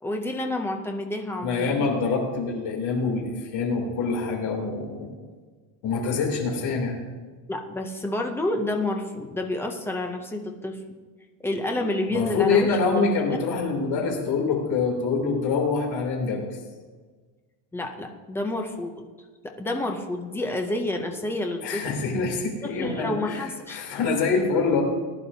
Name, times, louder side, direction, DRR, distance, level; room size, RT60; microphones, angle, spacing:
voice 1, 0.0-1.9 7.5-10.8 11.4-13.4 17.7-19.1 19.4-21.8 22.6-23.8, left 1 dB, 5° left, 3 dB, 0.4 m, -29 dB
voice 2, 1.4-5.1 5.8-7.0 12.1-16.4 21.6-24.8, left 4 dB, 50° left, 0 dB, 2.9 m, -25 dB
19.0 x 11.0 x 2.7 m, 1.4 s
cardioid pair, 170°, 49 cm